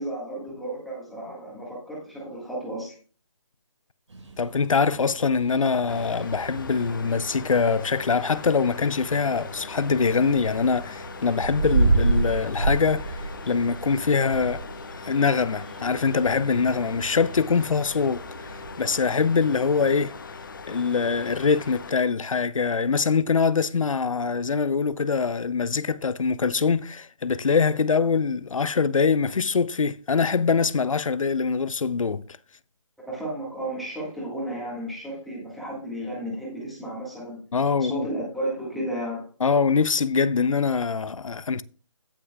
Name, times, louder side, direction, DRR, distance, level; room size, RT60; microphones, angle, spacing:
voice 1, 0.0-3.0 33.1-37.4 37.8-39.2, right 1 dB, ahead, 1.8 m, -33 dB
sound 1, 4.1-19.0, right 3 dB, 65° right, 3.9 m, -31 dB
voice 2, 4.4-14.6 15.0-18.5 18.8-20.1 20.7-32.4 37.5-38.1 39.4-41.6, left 5 dB, 85° left, 0.6 m, -23 dB
sound 2, 5.9-21.9, left 4 dB, 40° left, 0.8 m, -40 dB
16.5 x 6.0 x 2.3 m
hypercardioid pair, 170°, 17 cm